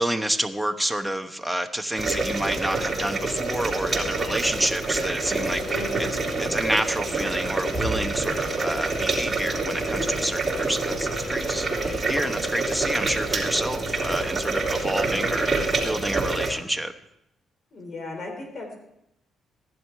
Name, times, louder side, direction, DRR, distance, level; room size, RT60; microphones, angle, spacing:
voice 1, 0.0-16.9, right 1 dB, 5° right, 7 dB, 1.0 m, -29 dB
sound 1, 1.9-16.5, right 3 dB, 20° right, 3.2 m, -27 dB
voice 2, 5.7-6.3 17.7-18.7, left 2 dB, 50° left, 4 dB, 3.8 m, -35 dB
15.5 x 11.0 x 4.6 m, 0.83 s
cardioid pair, 90°, 0 cm